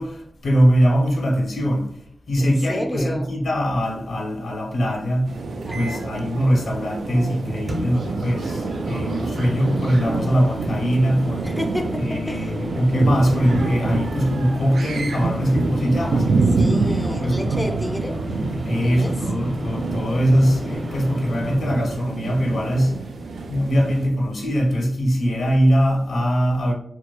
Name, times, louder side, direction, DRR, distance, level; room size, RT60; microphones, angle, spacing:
voice 1, 0.0-2.0 2.3-5.4 5.7-11.5 12.0-17.7 18.6-23.0 23.5-26.7, equal, 80° left, 0.8 m, -21 dB
voice 2, 2.4-3.3 5.6-6.1 11.4-12.6 16.0-18.2 18.8-19.2, equal, 5° left, 0.4 m, -31 dB
sound 1, 5.3-24.1, right 3 dB, 90° right, 0.4 m, -27 dB
sound 2, 5.7-6.2 7.7-21.6, left 1 dB, 35° right, 0.8 m, -34 dB
4.4 x 2.2 x 2.4 m
wide cardioid pair, 110°, 0 cm